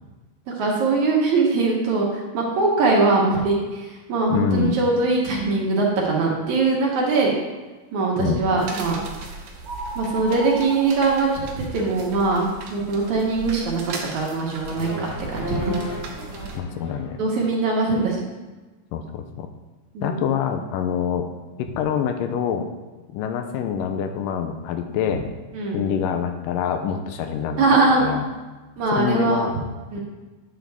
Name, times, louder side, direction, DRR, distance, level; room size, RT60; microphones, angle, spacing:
voice 1, 0.6-7.3 7.9-9.0 10.0-13.8 14.1-15.7 16.2-16.3 17.2-18.2 19.9-20.2 25.5-25.8 27.6-28.0 28.8-29.5 29.9-30.0, right 3 dB, 65° right, -2 dB, 2.4 m, -21 dB
voice 2, 4.3-4.8 8.2-8.4 16.5-17.2 18.9-19.5 20.0-21.3 21.6-22.7 23.1-25.3 25.7-27.6 28.0-28.2 28.9-29.6, left 8 dB, 85° left, 6 dB, 2.2 m, -25 dB
sound 1, 8.6-16.6, right 3 dB, 80° right, 2.6 m, -38 dB
sound 2, 9.1-9.2 9.6-11.7, right 1 dB, 30° right, 1.4 m, -35 dB
sound 3, 14.7-17.7, left 1 dB, 40° left, 2.7 m, -34 dB
9.4 x 6.1 x 3.4 m, 1.2 s
omnidirectional pair, 4.0 m